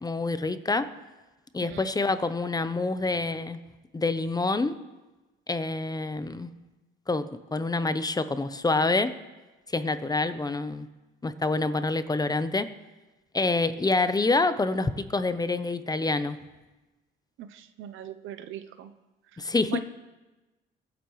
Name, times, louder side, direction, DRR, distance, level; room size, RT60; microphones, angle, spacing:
voice 1, 0.0-0.9 1.5-3.6 3.9-4.7 5.5-6.5 7.1-9.1 9.7-10.9 11.2-12.7 13.3-16.4 19.4-19.8, left 3 dB, 20° left, 12 dB, 0.7 m, -27 dB
voice 2, 17.4-18.9 19.7-19.8, right 12 dB, 85° right, 10 dB, 0.7 m, -39 dB
22.5 x 10.0 x 3.2 m, 1.1 s
cardioid pair, 90°, 20 cm